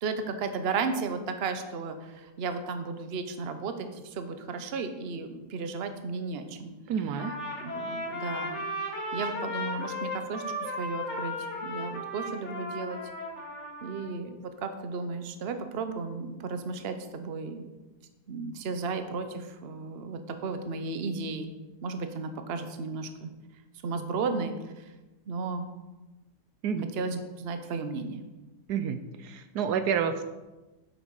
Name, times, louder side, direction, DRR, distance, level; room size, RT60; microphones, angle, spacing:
voice 1, 0.0-6.7 7.6-8.6 9.1-10.4 10.8-11.3 11.6-13.0 13.8-17.7 18.3-21.5 21.8-23.3 23.8-24.8 25.3-25.7 27.0-28.2, right 4 dB, 45° right, 8 dB, 0.9 m, -34 dB
voice 2, 6.9-7.4 26.6-26.8 28.7-30.2, right 7 dB, 75° right, 10 dB, 1.2 m, -29 dB
Trumpet, 7.2-14.1, left 1 dB, 45° left, 2.6 m, -35 dB
9.4 x 8.1 x 4.8 m, 1.1 s
omnidirectional pair, 1.8 m